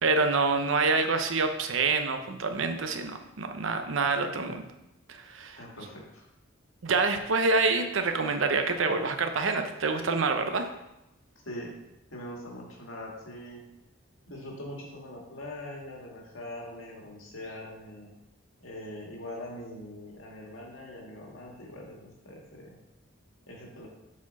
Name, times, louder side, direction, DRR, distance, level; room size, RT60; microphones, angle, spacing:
voice 1, 0.0-4.6 5.1-5.6 6.8-10.7, right 3 dB, 80° right, 7 dB, 0.7 m, -27 dB
voice 2, 5.6-6.2 11.5-11.7 12.1-13.6 14.3-18.1 18.6-22.8 23.5-23.9, left 1 dB, 90° left, -1 dB, 1.8 m, -42 dB
7.4 x 4.3 x 4.1 m, 0.91 s
head